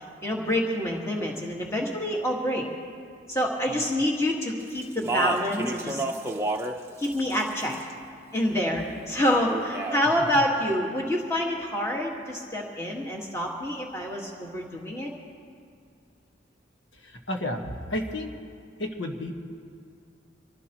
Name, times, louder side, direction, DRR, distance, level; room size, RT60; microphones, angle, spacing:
voice 1, 0.0-2.6 3.3-6.0 7.0-7.8 8.3-15.1, left 1 dB, 15° left, -1 dB, 1.8 m, -27 dB
Speech, 4.8-6.8 7.0-7.9 9.4-10.0, right 2 dB, 15° right, 0.7 m, -30 dB
voice 2, 16.9-18.3 18.8-19.3, left 1 dB, 75° left, 2 dB, 1.6 m, -32 dB
25.5 x 15.5 x 3.1 m, 2.4 s
head